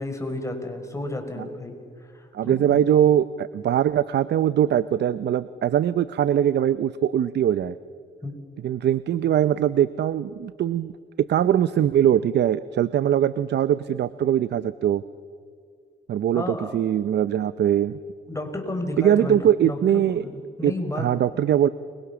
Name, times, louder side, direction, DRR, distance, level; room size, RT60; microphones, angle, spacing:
voice 1, 0.0-2.8 8.2-8.4 16.3-16.8 18.3-21.1, left 2 dB, 15° left, 5 dB, 5.2 m, -32 dB
voice 2, 2.3-7.8 8.6-10.9 11.3-15.0 16.1-18.0 19.0-20.2 20.6-21.7, right 10 dB, 60° right, 15 dB, 0.7 m, -21 dB
30.0 x 24.0 x 7.1 m, 2.2 s
cardioid pair, 90°, 20 cm